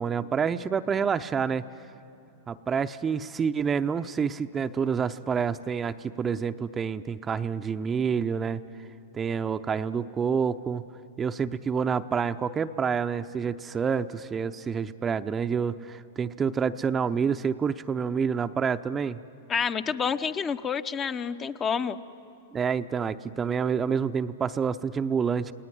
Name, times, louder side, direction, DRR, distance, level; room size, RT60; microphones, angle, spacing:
voice 1, 0.0-1.6 2.5-8.6 9.1-10.8 11.2-19.2 22.5-25.5, right 6 dB, 20° right, 9 dB, 0.7 m, -28 dB
voice 2, 19.5-22.0, left 6 dB, 25° left, 9 dB, 0.8 m, -28 dB
29.5 x 19.0 x 9.5 m, 2.5 s
figure-of-eight pair, 100°, 0 cm